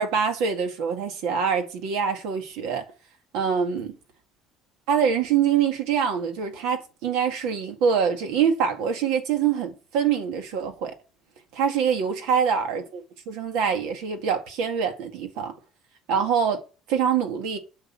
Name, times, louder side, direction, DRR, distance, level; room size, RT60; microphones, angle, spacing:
voice 1, 0.0-2.9 3.3-3.9 4.9-11.0 11.5-15.5 16.1-16.6 16.9-17.6, right 7 dB, 85° right, 1.9 m, -24 dB
8.1 x 5.3 x 6.2 m
cardioid pair, 135°, 0 cm